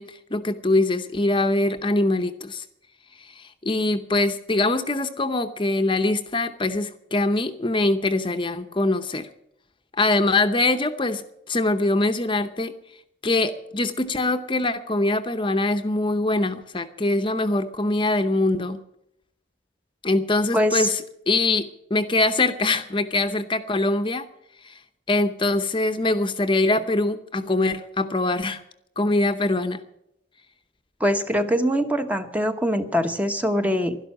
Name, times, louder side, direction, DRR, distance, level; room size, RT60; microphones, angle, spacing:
voice 1, 0.0-2.6 3.2-9.3 10.0-12.7 13.2-18.8 20.0-24.3 24.6-24.8 25.1-28.6 29.0-29.8, left 2 dB, 25° left, 8 dB, 0.8 m, -23 dB
voice 2, 20.5-20.9 31.0-34.0, equal, 10° right, 7 dB, 0.9 m, -23 dB
12.0 x 12.0 x 8.6 m, 0.79 s
head